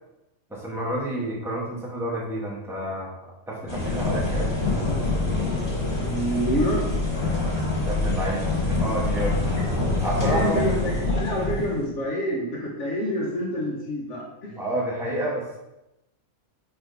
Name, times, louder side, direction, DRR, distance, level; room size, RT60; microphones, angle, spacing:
voice 1, 0.5-3.1 3.5-4.5 7.8-9.4 10.0-10.6 14.5-15.6, right 1 dB, ahead, -4 dB, 1.2 m, -29 dB
sound 1, 3.7-11.8, left 2 dB, 40° left, 2.2 m, -25 dB
voice 2, 6.0-6.9 9.5-9.6 10.2-14.5, equal, 65° left, -3 dB, 1.5 m, -27 dB
4.5 x 4.3 x 5.1 m, 0.91 s
omnidirectional pair, 1.4 m